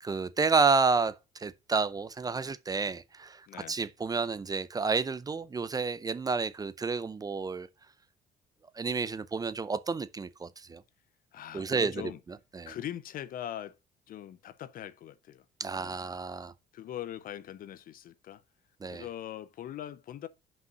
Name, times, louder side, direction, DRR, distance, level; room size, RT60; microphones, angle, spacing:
voice 1, 0.0-7.7 8.7-10.8 11.5-12.7 15.6-16.5 18.8-19.1, right 4 dB, 20° right, 0.5 m, -30 dB
voice 2, 3.5-3.8 11.3-12.2 12.7-13.8 14.1-15.4 15.7-16.0 16.7-18.4 18.9-20.3, left 11 dB, 55° left, 0.7 m, -41 dB
5.5 x 5.3 x 6.2 m
cardioid pair, 110°, 17 cm